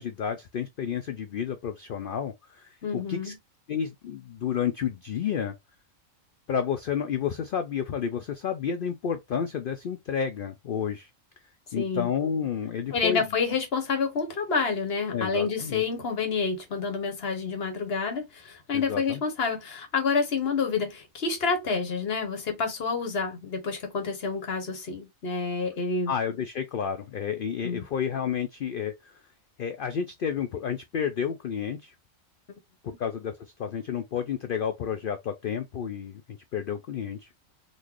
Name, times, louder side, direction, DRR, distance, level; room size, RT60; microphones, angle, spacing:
voice 1, 0.0-3.3 3.7-5.5 6.5-11.1 11.7-13.2 15.1-15.8 18.7-19.2 26.1-29.1 29.6-31.9 32.8-36.2 36.5-37.3, left 7 dB, 70° left, 0.5 m, -31 dB
voice 2, 2.8-3.4 11.7-12.1 12.9-26.1 27.6-27.8, left 5 dB, 50° left, 1.1 m, -28 dB
3.8 x 2.6 x 3.0 m
omnidirectional pair, 1.4 m